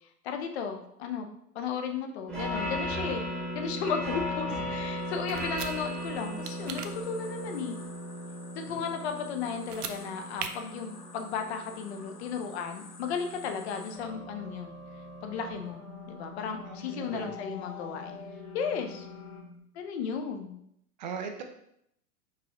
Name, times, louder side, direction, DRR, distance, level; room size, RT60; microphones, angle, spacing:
voice 1, 0.2-1.3 1.5-3.2 3.5-7.8 8.6-14.8 15.2-18.2 18.5-19.1 19.7-20.6, left 6 dB, 45° left, 5 dB, 0.7 m, -35 dB
sound 1, 2.3-19.6, equal, ahead, 1.0 m, -39 dB
sound 2, 5.0-19.4, left 5 dB, 65° left, 1.3 m, -48 dB
sound 3, 5.3-5.7 6.4-6.9 9.6-10.0 10.4-10.5, right 7 dB, 75° right, 0.6 m, -37 dB
voice 2, 16.7-17.3 21.0-21.4, right 6 dB, 30° right, 5 dB, 0.4 m, -40 dB
4.7 x 3.7 x 2.9 m, 0.73 s
figure-of-eight pair, 110°, 47 cm